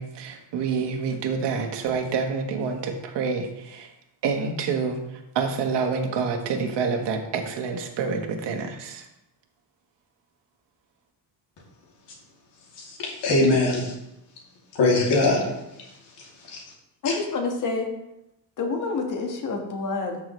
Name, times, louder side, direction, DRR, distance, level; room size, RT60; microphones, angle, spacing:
voice 1, 0.0-3.9 4.2-5.0 5.3-9.0, right 5 dB, 80° right, 4 dB, 1.4 m, -27 dB
voice 2, 12.8-13.9 14.7-15.5 16.2-16.6 17.0-17.2, left 2 dB, 90° left, -2 dB, 2.9 m, -22 dB
voice 3, 17.0-17.9 18.6-20.2, left 4 dB, 50° left, 2 dB, 1.6 m, -28 dB
13.0 x 6.1 x 3.2 m, 0.87 s
cardioid pair, 170°, 41 cm